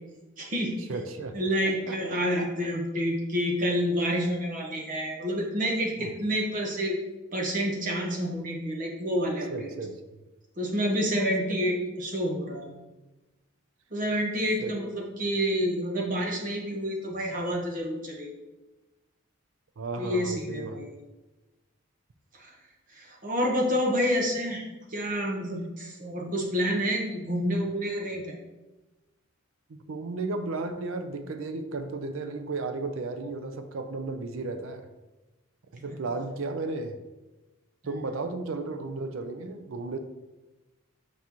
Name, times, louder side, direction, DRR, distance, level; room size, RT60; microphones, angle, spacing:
voice 1, 0.4-0.8 1.3-7.0 7.3-9.7 10.6-12.7 13.9-18.3 20.0-20.9 22.4-22.5 22.9-28.3 35.9-36.0, equal, 40° right, 0 dB, 1.1 m, -28 dB
voice 2, 0.9-1.4 1.6-2.5 6.0-6.1 8.0-8.1 9.5-10.0 14.6-14.8 19.8-20.8 29.9-34.9 35.8-37.0 37.8-40.0, right 3 dB, 80° right, 8 dB, 0.5 m, -34 dB
5.9 x 5.7 x 3.0 m, 1.1 s
head